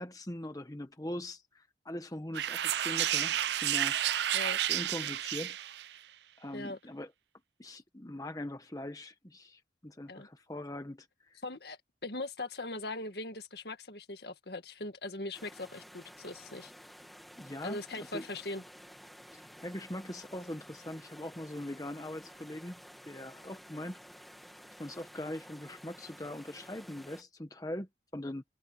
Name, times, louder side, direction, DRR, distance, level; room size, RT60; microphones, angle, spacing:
voice 1, 0.0-4.0 4.7-5.6 6.4-7.1 7.6-11.4 17.4-18.2 19.3-24.2 24.8-28.4, left 1 dB, 20° left, 1.1 m, -42 dB
sound 1, 2.3-5.9, right 11 dB, 70° right, 0.4 m, -31 dB
voice 2, 11.4-16.7 17.6-18.6, left 2 dB, 60° left, 1.9 m, -40 dB
sound 2, 15.3-27.2, equal, ahead, 1.9 m, -53 dB
head